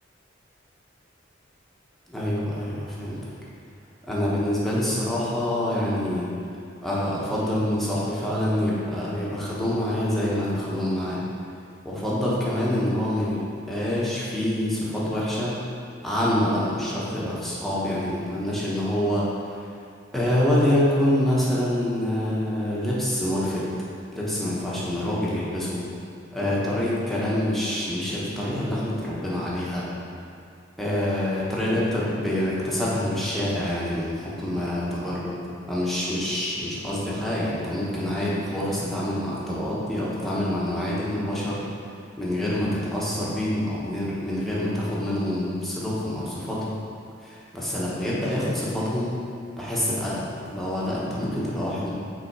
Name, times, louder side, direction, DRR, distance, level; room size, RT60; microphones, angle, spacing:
voice 1, 2.1-3.2 4.1-6.3 6.8-11.2 11.8-15.5 16.0-19.3 20.1-23.7 24.1-25.8 26.3-29.9 30.8-35.4 35.7-41.6 42.2-46.7 47.2-49.2 49.6-51.9, left 1 dB, ahead, -8 dB, 1.1 m, -26 dB
5.8 x 3.5 x 4.7 m, 2.4 s
head